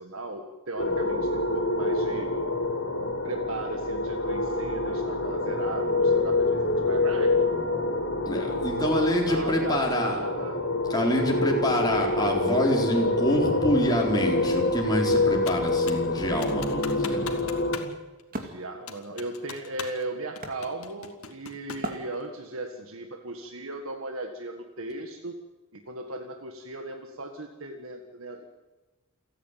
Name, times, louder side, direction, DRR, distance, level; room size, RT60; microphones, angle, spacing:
voice 1, 0.0-2.3 3.2-7.3 8.8-10.6 11.2-11.5 18.4-25.4 25.7-28.4, right 2 dB, 70° right, 5 dB, 1.7 m, -37 dB
sound 1, 0.8-17.8, left 2 dB, 60° left, 4.0 m, -26 dB
voice 2, 8.3-10.2 10.9-17.2, left 1 dB, 20° left, -1 dB, 4.1 m, -26 dB
Computer keyboard, 15.5-16.1 16.4-17.9 18.2-18.3 18.9-20.0 20.4-21.9, left 6 dB, 80° left, 2.0 m, -40 dB
Wood, 17.4-21.3 21.8-22.7, right 1 dB, 40° right, 2.4 m, -40 dB
28.5 x 10.0 x 9.2 m, 1.2 s
head